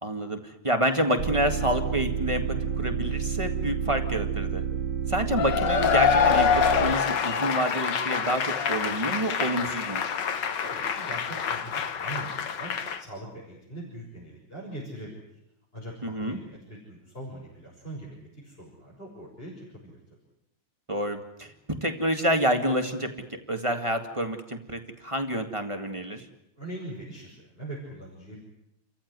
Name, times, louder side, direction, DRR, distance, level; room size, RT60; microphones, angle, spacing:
voice 1, 0.0-2.4 2.8-4.6 5.1-6.5 6.8-10.0 16.0-16.4 20.9-21.5 21.8-26.3, equal, 15° right, 5 dB, 1.9 m, -28 dB
sound 1, 1.2-7.0, right 7 dB, 60° right, 2.4 m, -30 dB
Cheering / Applause / Crowd, 5.3-13.0, left 7 dB, 60° left, 1.8 m, -26 dB
voice 2, 10.5-15.2 15.7-20.0 26.6-28.4, right 1 dB, 25° left, -4 dB, 6.2 m, -41 dB
29.5 x 14.5 x 9.7 m, 0.80 s
omnidirectional pair, 2.3 m